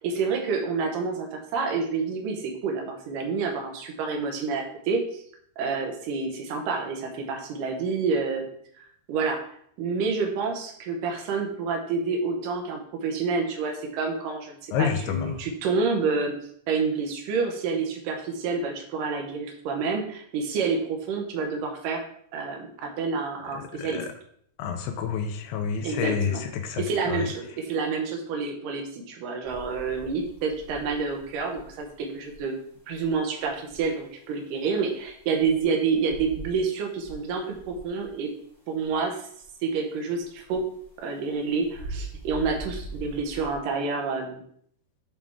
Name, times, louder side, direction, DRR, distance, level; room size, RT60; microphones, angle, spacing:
voice 1, 0.0-5.2 5.6-8.5 8.8-9.4 9.8-16.3 16.7-22.0 22.3-24.0 25.8-26.4 26.8-32.6 32.9-38.3 38.7-39.2 39.6-40.6 41.0-44.4, right 4 dB, 70° right, 2 dB, 2.2 m, -28 dB
voice 2, 14.7-15.4 23.5-24.1 24.6-27.3, left 7 dB, 85° left, 5 dB, 2.7 m, -29 dB
sound 1, 29.4-34.5 34.8-36.7 37.0-39.8 40.1-43.5, right 2 dB, 15° left, 1.2 m, -43 dB
8.8 x 3.5 x 3.5 m, 0.65 s
omnidirectional pair, 4.7 m